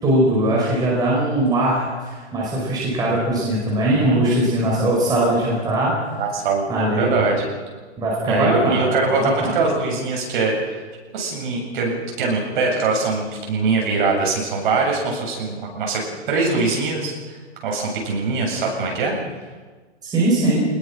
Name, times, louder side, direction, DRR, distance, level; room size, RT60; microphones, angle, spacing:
voice 1, 0.0-6.0 6.7-7.1 8.0-9.5 20.0-20.6, right 1 dB, 10° right, -5 dB, 5.3 m, -20 dB
voice 2, 4.1-4.5 6.2-7.4 8.3-10.8 11.1-16.0 16.3-17.4 17.6-19.1, right 3 dB, 45° right, 0 dB, 7.7 m, -22 dB
24.5 x 21.0 x 6.1 m, 1.4 s
hypercardioid pair, 165°, 35 cm